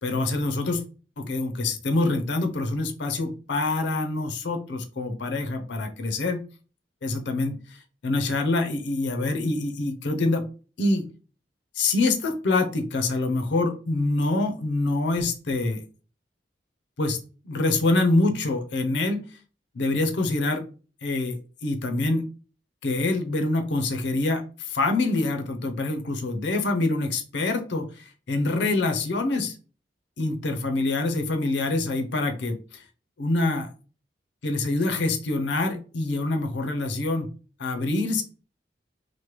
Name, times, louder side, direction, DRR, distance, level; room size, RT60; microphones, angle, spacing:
voice 1, 0.0-0.8 1.2-6.4 7.0-7.8 8.0-10.4 10.8-11.0 11.8-15.8 17.0-19.2 19.7-20.6 21.0-22.2 22.8-29.6 30.2-32.8 33.2-33.7 34.4-37.3 37.6-38.2, left 2 dB, 75° left, 6 dB, 0.6 m, -25 dB
3.1 x 2.1 x 3.0 m, 0.36 s
head